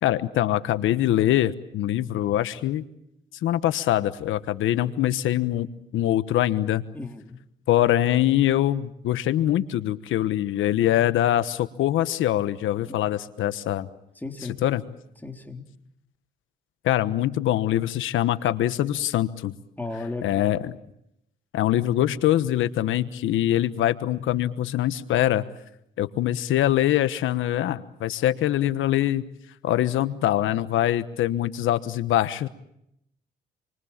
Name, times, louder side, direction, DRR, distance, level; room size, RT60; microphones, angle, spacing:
voice 1, 0.0-2.8 3.4-5.7 5.9-6.8 7.7-13.9 14.6-14.8 16.8-19.5 20.2-20.8 21.5-25.4 26.0-29.3 29.6-32.5, left 13 dB, 80° left, 13 dB, 1.2 m, -23 dB
voice 2, 6.9-7.4 12.9-13.0 14.2-14.6 15.2-15.7 19.8-20.5, left 3 dB, 10° left, 4 dB, 3.7 m, -35 dB
28.5 x 23.5 x 7.4 m, 0.78 s
cardioid pair, 90°, 20 cm